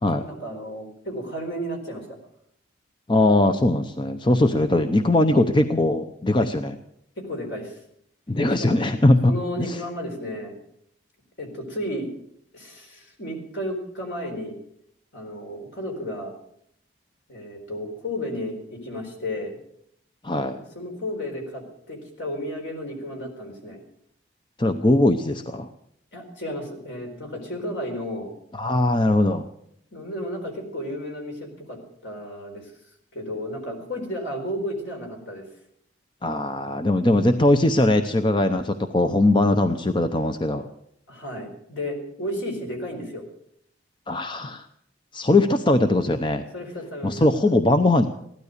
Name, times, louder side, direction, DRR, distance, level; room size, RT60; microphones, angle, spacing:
voice 1, 0.2-2.2 4.5-4.7 7.2-7.8 8.6-8.9 9.3-10.5 11.4-12.1 12.5-14.6 15.1-16.3 17.3-19.6 20.5-23.8 26.1-28.3 29.9-32.7 33.1-35.4 41.1-43.3 46.5-47.1, equal, 75° left, 2 dB, 4.4 m, -33 dB
voice 2, 3.1-6.8 8.3-9.3 9.7-9.8 20.2-20.6 24.6-25.7 28.6-29.4 36.2-40.7 44.1-44.6 45.1-46.4 47.0-48.1, left 1 dB, 25° left, 8 dB, 0.7 m, -20 dB
16.5 x 12.5 x 6.7 m, 0.70 s
head